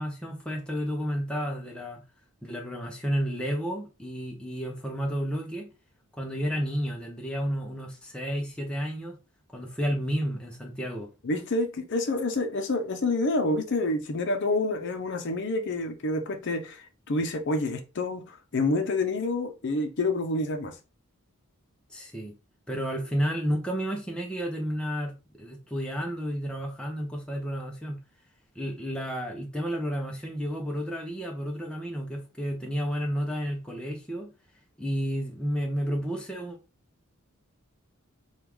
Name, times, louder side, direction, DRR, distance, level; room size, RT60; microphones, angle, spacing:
voice 1, 0.0-2.0 2.4-5.7 6.1-9.2 9.5-11.1 21.9-22.3 22.7-28.0 28.6-34.3 34.8-36.6, equal, 5° left, 0.5 m, -31 dB
voice 2, 11.2-20.7, left 2 dB, 55° left, 0.6 m, -28 dB
4.6 x 2.3 x 3.4 m
head